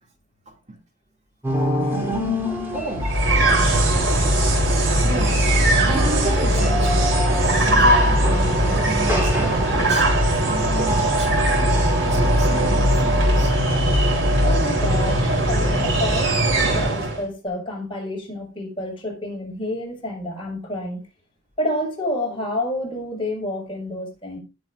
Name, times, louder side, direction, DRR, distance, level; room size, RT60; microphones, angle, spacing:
sound 1, 1.4-13.5, equal, 10° right, 3.7 m, -28 dB
voice 1, 2.7-3.1 5.0-5.4 5.7-7.1 7.4-10.1 10.4-13.5, right 2 dB, 35° right, 2.7 m, -33 dB
sound 2, 2.9-16.9, left 2 dB, 75° left, 1.1 m, -23 dB
sound 3, 3.0-17.2, right 2 dB, 70° right, 3.9 m, -21 dB
voice 2, 14.4-21.0 21.6-24.4, left 1 dB, 25° left, 6.2 m, -29 dB
19.5 x 7.6 x 2.7 m
head